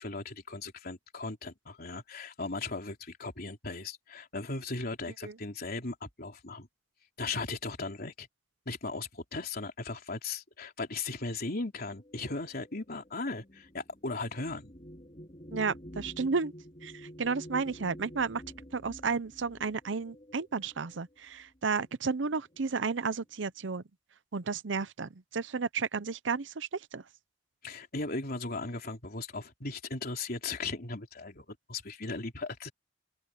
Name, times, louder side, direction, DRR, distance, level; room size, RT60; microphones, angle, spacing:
voice 1, 0.0-6.7 7.2-8.3 8.7-14.7 27.6-32.7, left 3 dB, 55° left, 3.7 m, -37 dB
sound 1, 12.1-21.0 21.9-22.0 22.4-23.0, equal, 30° left, 3.8 m, -49 dB
voice 2, 15.5-16.5 16.8-18.4 18.7-23.8 24.3-27.0, right 5 dB, 70° right, 0.7 m, -32 dB
open air
head